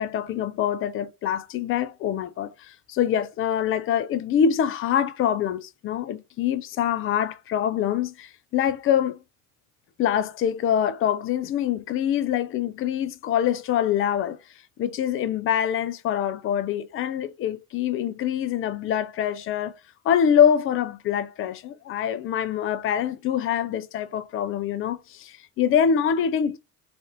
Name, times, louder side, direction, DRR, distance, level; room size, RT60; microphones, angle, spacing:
voice 1, 0.0-9.2 10.0-14.4 14.8-19.7 20.0-26.6, left 9 dB, 30° left, 0.4 m, -25 dB
3.4 x 2.5 x 2.5 m
hypercardioid pair, 75°, 46 cm